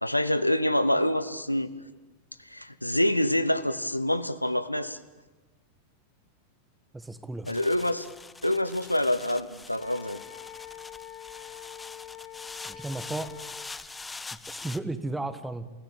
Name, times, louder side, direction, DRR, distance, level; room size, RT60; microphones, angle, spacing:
voice 1, 0.0-1.7 2.5-5.0 7.5-8.1 8.4-10.2, left 1 dB, 85° left, 14 dB, 0.9 m, -26 dB
voice 2, 6.9-7.5 12.6-13.3 14.5-15.7, right 2 dB, 5° right, 12 dB, 1.6 m, -34 dB
sound 1, 7.4-14.8, left 3 dB, 10° left, 0.8 m, -44 dB
Wind instrument woodwind instrument, 9.8-13.7, left 12 dB, 40° left, 3.9 m, -45 dB
29.0 x 16.5 x 8.9 m, 1.2 s
figure-of-eight pair, 90°, 0 cm